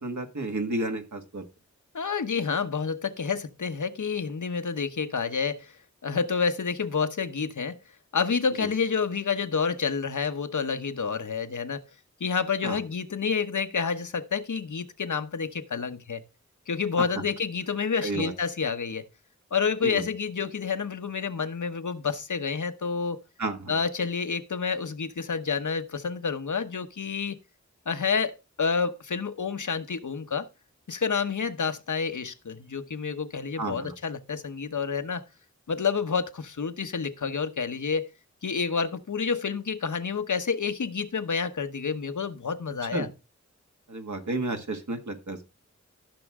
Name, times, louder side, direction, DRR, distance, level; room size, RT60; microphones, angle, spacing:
voice 1, 0.0-1.5 8.6-8.7 12.6-12.8 18.0-18.3 19.8-20.0 23.4-23.8 33.6-33.9 42.9-43.1 43.9-45.4, right 2 dB, 75° right, 1.9 m, -31 dB
voice 2, 1.9-5.8 6.0-7.8 8.1-11.8 12.2-16.2 16.7-19.0 19.5-23.2 23.7-27.4 27.9-30.5 30.9-35.2 35.7-38.1 38.4-43.1, left 5 dB, 85° left, 1.0 m, -29 dB
14.5 x 6.3 x 3.6 m
wide cardioid pair, 65°, 29 cm